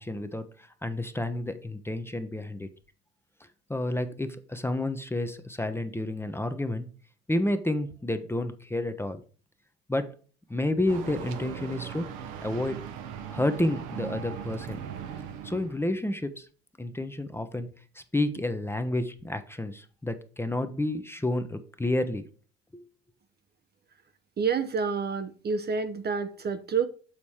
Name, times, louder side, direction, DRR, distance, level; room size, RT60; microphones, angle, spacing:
voice 1, 0.0-2.7 3.7-6.9 7.3-9.2 9.9-10.2 10.5-12.1 12.4-12.8 13.3-14.8 15.4-16.5 16.8-17.7 18.0-22.2 22.7-22.8, left 1 dB, 10° left, 0.8 m, -30 dB
sound 1, 10.9-15.8, right 8 dB, 70° right, 1.1 m, -39 dB
voice 2, 24.4-26.9, right 5 dB, 30° right, 0.8 m, -28 dB
7.4 x 4.1 x 4.7 m
hypercardioid pair, 60°, 31 cm